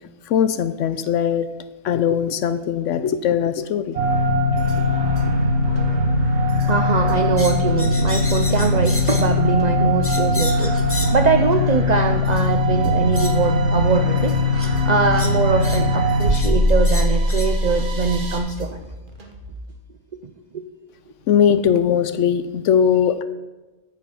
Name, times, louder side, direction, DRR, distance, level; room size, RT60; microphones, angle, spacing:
voice 1, 0.3-1.5 1.8-4.0 21.3-23.2, left 8 dB, 70° left, 12 dB, 0.9 m, -20 dB
sound 1, 3.9-18.4, left 2 dB, 55° right, 1.6 m, -20 dB
sound 2, 4.4-19.7, right 1 dB, 40° right, 1.2 m, -39 dB
voice 2, 6.7-10.8 11.1-14.4 14.8-18.8 20.5-20.6, right 5 dB, 75° right, 7 dB, 0.4 m, -22 dB
sound 3, 7.4-9.3 10.0-11.2 12.3-12.4 13.1-13.4 14.5-14.7 15.1-15.9 16.3-16.6 16.8-17.5, left 2 dB, 15° left, 0.6 m, -32 dB
8.7 x 7.6 x 5.8 m, 1.2 s
omnidirectional pair, 1.4 m